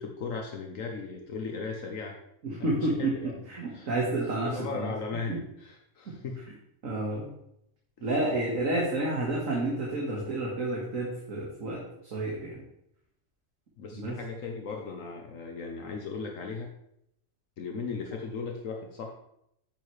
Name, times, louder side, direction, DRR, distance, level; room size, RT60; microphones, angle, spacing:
voice 1, 0.0-2.2 2.6-3.5 3.7-3.9 4.4-6.4 13.8-16.7 17.6-19.1, left 4 dB, 70° left, 1 dB, 1.3 m, -37 dB
voice 2, 2.4-3.1 3.5-4.9 5.3-5.4 6.8-7.3 8.0-11.8 12.1-12.6 13.9-14.1, right 2 dB, 75° right, -3 dB, 2.1 m, -30 dB
9.0 x 7.6 x 3.3 m, 0.77 s
omnidirectional pair, 1.4 m